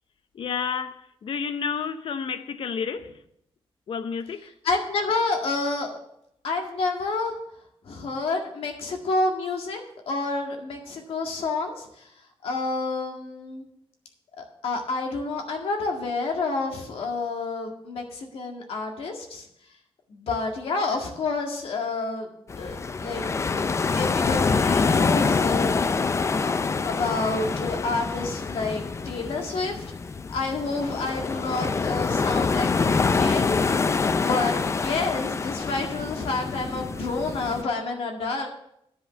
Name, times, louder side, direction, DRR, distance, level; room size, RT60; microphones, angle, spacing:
voice 1, 0.3-3.1 3.9-4.5, left 6 dB, 65° left, 0.7 m, -30 dB
voice 2, 4.6-6.0 6.4-7.4 7.8-12.0 12.4-13.7 14.4-19.5 20.1-22.3 22.6-23.2 23.5-25.9 26.4-26.5 26.8-29.9 30.3-33.6 34.1-38.5, left 3 dB, 85° left, 1.9 m, -29 dB
sound 1, 22.5-37.6, left 4 dB, 30° left, 0.4 m, -26 dB
9.8 x 5.6 x 7.2 m
wide cardioid pair, 125°, 10 cm